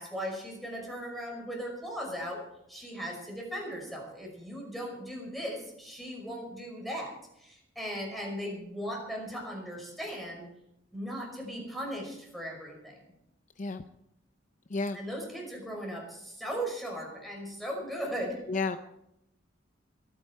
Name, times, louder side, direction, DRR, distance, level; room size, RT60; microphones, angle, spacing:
voice 1, 0.0-2.4 2.7-10.5 10.9-13.0 14.9-18.4, equal, ahead, -1 dB, 5.6 m, -38 dB
voice 2, 13.6-13.8 14.7-15.0 18.5-18.8, left 3 dB, 40° left, 9 dB, 0.6 m, -31 dB
23.0 x 10.0 x 4.6 m, 0.82 s
head